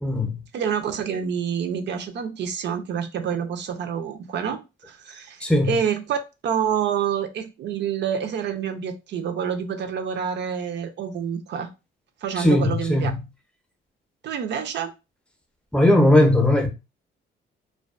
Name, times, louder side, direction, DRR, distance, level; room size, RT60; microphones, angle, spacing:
voice 1, 0.0-0.4 5.4-5.8 12.4-13.2 15.7-16.7, left 1 dB, 5° left, 0.6 m, -18 dB
voice 2, 0.5-6.2 6.4-11.7 12.2-13.1 14.2-14.9, right 7 dB, 65° right, 0.5 m, -27 dB
2.3 x 2.2 x 2.4 m
cardioid pair, 90°, 20 cm